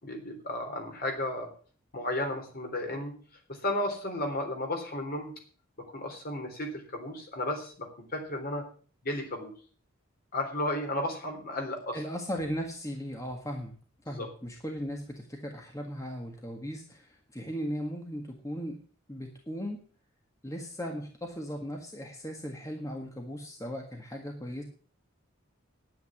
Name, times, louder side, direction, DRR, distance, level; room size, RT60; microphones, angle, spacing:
voice 1, 0.0-1.5 1.9-3.1 3.5-5.3 5.9-8.6 9.0-9.5 10.3-12.0 14.1-14.3, left 1 dB, 45° left, 3 dB, 3.6 m, -33 dB
voice 2, 11.9-13.7 14.0-18.8 19.1-19.9 20.4-24.6, equal, 15° left, 2 dB, 1.7 m, -37 dB
10.0 x 9.5 x 7.2 m, 0.41 s
head